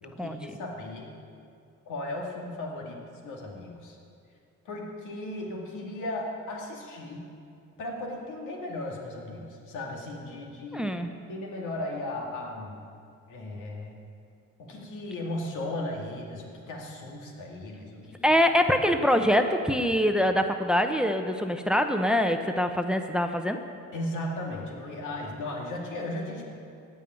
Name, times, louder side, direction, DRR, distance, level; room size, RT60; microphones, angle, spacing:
voice 1, 0.0-1.2 1.9-4.0 4.6-7.3 7.8-10.9 11.3-12.8 13.3-13.9 14.6-18.2 23.9-26.4, left 1 dB, 85° left, 0 dB, 2.4 m, -36 dB
voice 2, 10.7-11.1 18.2-23.6, equal, 5° right, 6 dB, 0.8 m, -24 dB
16.5 x 5.5 x 9.0 m, 2.4 s
cardioid pair, 90°, 30 cm